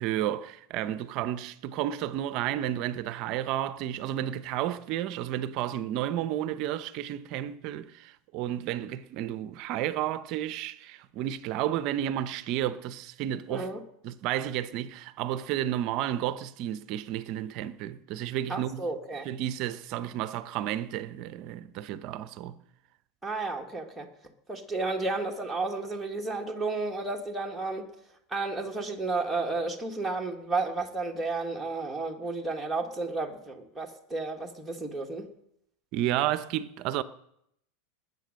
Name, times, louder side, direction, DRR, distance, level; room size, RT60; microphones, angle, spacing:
voice 1, 0.0-13.7 14.0-18.9 19.2-22.6 35.9-37.0, right 12 dB, 40° right, 0.7 m, -32 dB
voice 2, 13.5-13.8 18.5-19.3 23.2-24.1 24.5-27.9 28.3-35.3, right 3 dB, ahead, 1.4 m, -32 dB
20.0 x 8.2 x 6.4 m
supercardioid pair, 170°, 0 cm